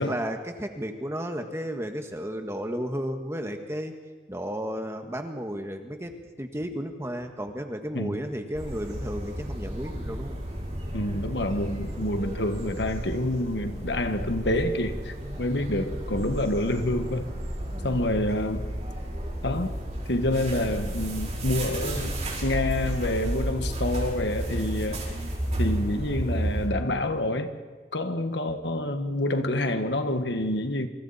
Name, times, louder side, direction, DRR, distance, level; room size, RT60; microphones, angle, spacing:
voice 1, 0.0-4.0 4.3-10.4 17.7-18.0, equal, 15° right, 5 dB, 1.6 m, -33 dB
sound 1, 8.5-26.7, right 1 dB, 40° right, 5.6 m, -32 dB
voice 2, 10.9-17.2 17.8-18.6 19.4-19.8 20.1-22.1 22.4-25.0 25.6-27.5 27.9-30.9, left 1 dB, 75° left, 7 dB, 1.7 m, -27 dB
28.5 x 25.5 x 4.3 m, 1.4 s
head